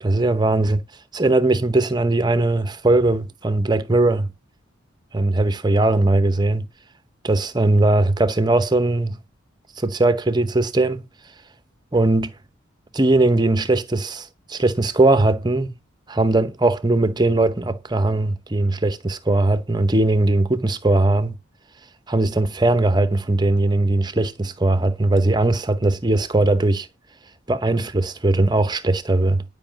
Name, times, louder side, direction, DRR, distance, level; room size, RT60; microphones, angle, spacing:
voice 1, 0.0-0.8 1.1-4.3 5.1-6.7 7.2-9.2 9.8-11.1 11.9-12.3 12.9-15.8 16.1-21.4 22.1-26.9 27.5-29.4, right 2 dB, 20° right, 0.8 m, -19 dB
11.5 x 5.4 x 7.4 m
head